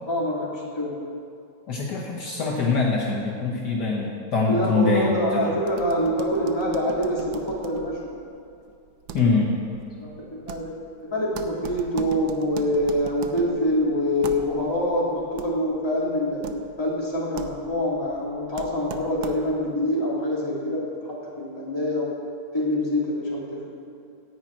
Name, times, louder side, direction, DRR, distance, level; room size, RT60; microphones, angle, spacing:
voice 1, 0.1-1.0 4.5-8.0 9.2-9.3 10.0-10.7 11.0-16.4 16.8-22.1 22.5-23.8, left 1 dB, 15° left, -6 dB, 2.7 m, -25 dB
voice 2, 1.7-5.6 9.1-9.5, left 3 dB, 60° left, -2 dB, 1.7 m, -24 dB
sound 1, 5.6-19.7, right 7 dB, 85° right, 1.6 m, -41 dB
10.5 x 9.1 x 8.6 m, 2.4 s
omnidirectional pair, 2.1 m